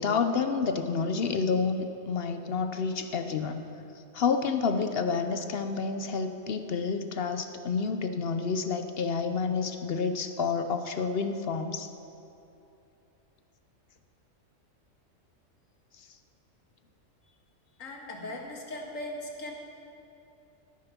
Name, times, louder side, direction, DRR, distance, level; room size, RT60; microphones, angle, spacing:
voice 1, 0.0-3.7 4.1-11.9, left 5 dB, 60° left, 8 dB, 0.8 m, -29 dB
voice 2, 17.8-19.5, left 1 dB, 75° left, 0 dB, 2.0 m, -38 dB
14.0 x 8.9 x 5.8 m, 2.7 s
omnidirectional pair, 1.4 m